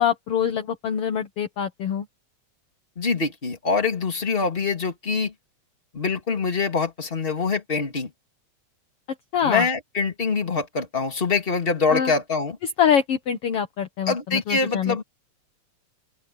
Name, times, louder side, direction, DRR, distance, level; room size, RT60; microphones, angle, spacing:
voice 1, 0.0-2.1 9.3-9.7 11.9-12.1 12.6-15.0, left 8 dB, 60° left, 1.9 m, -24 dB
voice 2, 3.0-5.3 5.9-8.1 9.4-12.6 14.1-15.0, left 4 dB, 20° left, 2.6 m, -24 dB
open air
omnidirectional pair, 3.3 m